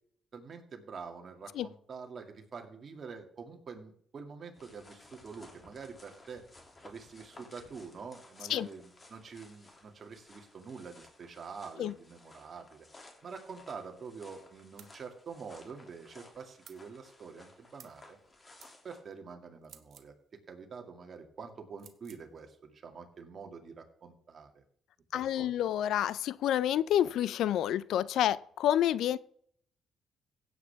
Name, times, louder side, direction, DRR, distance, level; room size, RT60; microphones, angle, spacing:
voice 1, 0.3-6.4 6.8-12.8 13.2-18.2 18.8-20.1 20.5-24.6 25.1-25.5, right 5 dB, 45° right, 4 dB, 2.2 m, -46 dB
sound 1, 4.5-19.0, left 2 dB, 30° left, 2.7 m, -57 dB
sound 2, 14.8-15.0 16.6-16.8 17.8-18.0 18.6-18.7 19.6-20.1 21.8-22.2, right 8 dB, 65° right, 1.3 m, -55 dB
voice 2, 25.1-29.2, left 11 dB, 80° left, 19 dB, 0.4 m, -29 dB
16.5 x 8.5 x 3.5 m, 0.63 s
cardioid pair, 90°, 0 cm